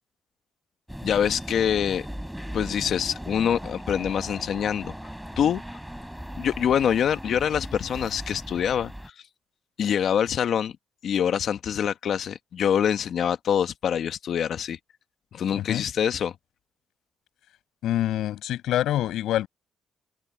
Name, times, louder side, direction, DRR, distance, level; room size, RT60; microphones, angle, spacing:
sound 1, 0.9-9.1, equal, ahead, 7.9 m, -38 dB
voice 1, 1.0-2.1 2.5-4.9 5.4-5.6 6.4-8.9 9.8-10.8 11.0-14.8 15.3-16.3, left 8 dB, 60° left, 1.4 m, -25 dB
voice 2, 17.8-19.5, left 13 dB, 85° left, 6.8 m, -26 dB
cardioid pair, 115°, 0 cm